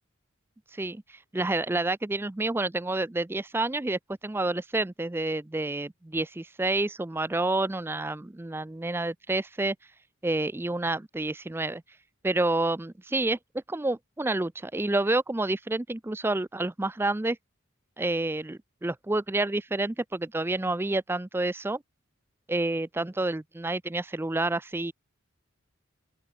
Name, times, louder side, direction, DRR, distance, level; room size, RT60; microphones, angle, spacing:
voice 1, 0.7-9.8 10.2-11.8 12.2-13.4 13.7-17.4 18.0-21.8 22.5-24.9, right 2 dB, 10° right, 0.4 m, -29 dB
open air
head